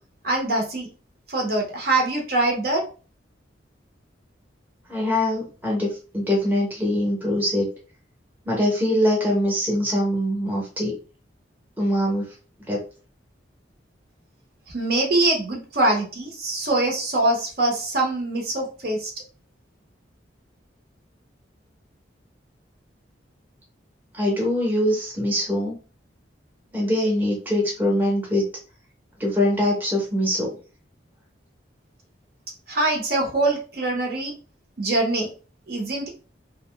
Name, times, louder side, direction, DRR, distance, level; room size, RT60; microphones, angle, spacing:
voice 1, 0.2-0.9 1.3-2.8 14.7-19.1 32.7-34.3 34.8-35.3 35.7-36.1, right 2 dB, 50° right, 0 dB, 0.8 m, -23 dB
voice 2, 4.9-5.9 6.1-7.7 8.4-10.9 11.8-12.3 12.7-12.8 24.1-25.7 26.7-28.4 29.2-30.5, left 1 dB, 10° right, -2 dB, 0.8 m, -23 dB
2.6 x 2.1 x 3.1 m, 0.36 s
head